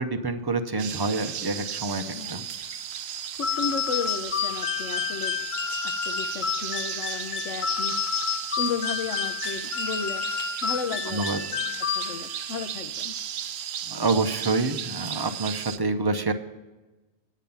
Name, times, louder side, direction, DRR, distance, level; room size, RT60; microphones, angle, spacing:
voice 1, 0.0-2.4 11.0-11.4 13.9-16.3, right 3 dB, 30° right, 8 dB, 0.4 m, -27 dB
sound 1, 0.8-15.8, right 9 dB, 65° right, 0.7 m, -35 dB
voice 2, 2.2-2.5 3.4-5.4 5.8-8.0 8.6-10.3 10.6-11.4 11.9-13.2, left 5 dB, 70° left, 9 dB, 1.1 m, -34 dB
sound 2, 3.4-12.5, left 7 dB, 50° left, 0.6 m, -30 dB
9.2 x 8.7 x 5.5 m, 1.1 s
omnidirectional pair, 1.3 m